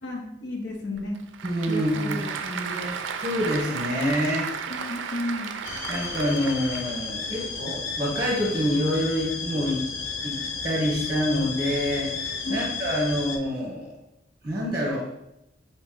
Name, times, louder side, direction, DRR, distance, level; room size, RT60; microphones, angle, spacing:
voice 1, 0.0-1.2 1.7-3.0 4.7-5.5 12.4-12.7, left 1 dB, 70° left, 1 dB, 0.9 m, -33 dB
Applause / Crowd, 0.9-7.1, right 6 dB, 75° right, 0.4 m, -34 dB
voice 2, 1.4-2.2 3.2-4.5 5.9-9.8 10.2-10.4 10.6-13.9 14.4-15.1, equal, 20° right, -3 dB, 0.9 m, -26 dB
sound 1, 5.6-13.4, left 5 dB, 90° left, 0.5 m, -33 dB
4.1 x 2.9 x 3.7 m, 0.85 s
head